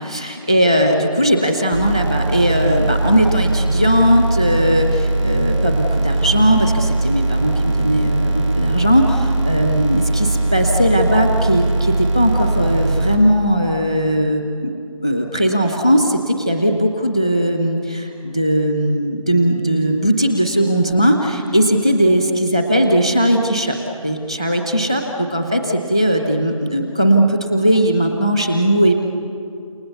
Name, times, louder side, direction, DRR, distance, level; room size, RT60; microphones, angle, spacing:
voice 1, 0.0-23.8 24.0-28.9, equal, 10° right, 4 dB, 0.9 m, -18 dB
sound 1, 1.7-13.2, right 2 dB, 60° right, 3.9 m, -20 dB
30.0 x 28.0 x 6.9 m, 2.5 s
figure-of-eight pair, 175°, 18 cm